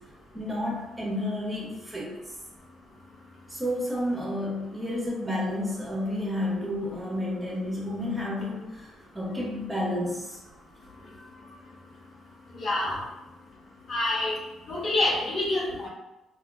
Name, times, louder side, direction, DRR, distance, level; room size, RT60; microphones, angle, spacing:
voice 1, 0.3-2.2 3.5-10.4 12.8-13.0 15.7-15.8, left 1 dB, 15° right, -4 dB, 1.3 m, -31 dB
voice 2, 12.6-13.0 13.9-14.4 14.7-15.9, left 2 dB, 50° left, -4 dB, 1.0 m, -26 dB
3.5 x 2.6 x 2.3 m, 0.95 s
hypercardioid pair, 55°, 0 cm